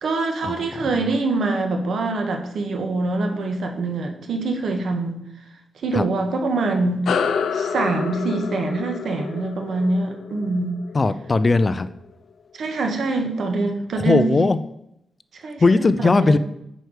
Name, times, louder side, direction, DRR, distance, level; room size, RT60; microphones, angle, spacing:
voice 1, 0.0-5.2 5.7-7.1 7.5-10.8 12.5-14.4 15.3-16.4, right 3 dB, 70° right, 4 dB, 1.5 m, -24 dB
sound 1, 7.0-11.9, left 6 dB, 85° left, 0.6 m, -28 dB
voice 2, 10.9-11.9 14.0-14.6 15.6-16.4, left 3 dB, 30° left, 14 dB, 0.4 m, -18 dB
9.2 x 4.7 x 6.5 m, 0.79 s
wide cardioid pair, 150°, 0 cm